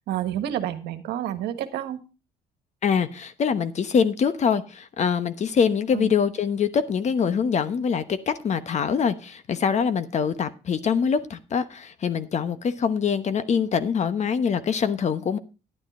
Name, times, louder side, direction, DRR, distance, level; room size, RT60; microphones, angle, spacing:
voice 1, 0.1-2.0 5.9-6.1, right 11 dB, 75° right, 1.4 m, -29 dB
voice 2, 2.8-15.4, left 6 dB, 45° left, 1.0 m, -24 dB
11.0 x 9.1 x 4.2 m
cardioid pair, 110°, 17 cm